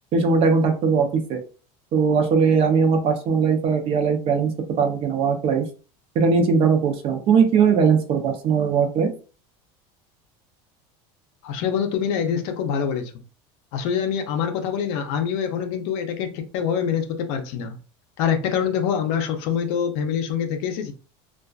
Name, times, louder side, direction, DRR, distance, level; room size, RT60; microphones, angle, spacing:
voice 1, 0.1-1.4 1.9-4.5 4.8-5.6 6.2-9.1, right 5 dB, 40° right, 0.5 m, -19 dB
voice 2, 11.4-13.1 13.7-17.7 18.2-20.9, left 7 dB, 65° left, 0.5 m, -25 dB
2.4 x 2.3 x 2.3 m
supercardioid pair, 145°, 15 cm